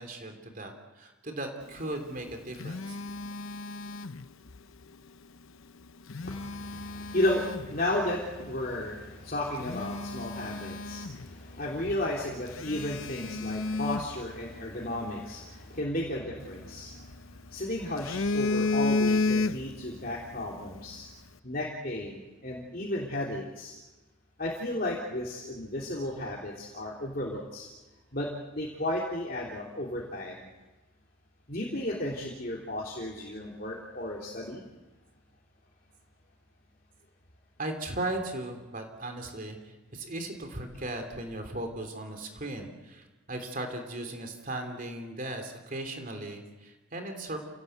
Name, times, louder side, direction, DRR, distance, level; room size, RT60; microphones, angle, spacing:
voice 1, 0.0-3.0 37.6-47.4, right 1 dB, 40° right, 5 dB, 3.3 m, -37 dB
Telephone, 2.0-4.6 5.9-7.8 8.4-8.6 9.1-9.2 9.5-11.6 11.9-12.0 12.5-14.9 16.4-17.4 17.8-19.9 20.2-20.4, left 3 dB, 80° left, 0.8 m, -32 dB
voice 2, 6.2-17.2 17.5-21.1 21.4-23.8 24.4-27.7 28.1-30.5 31.5-34.6, left 1 dB, 45° left, -3 dB, 3.3 m, -34 dB
28.5 x 18.0 x 8.1 m, 1.2 s
head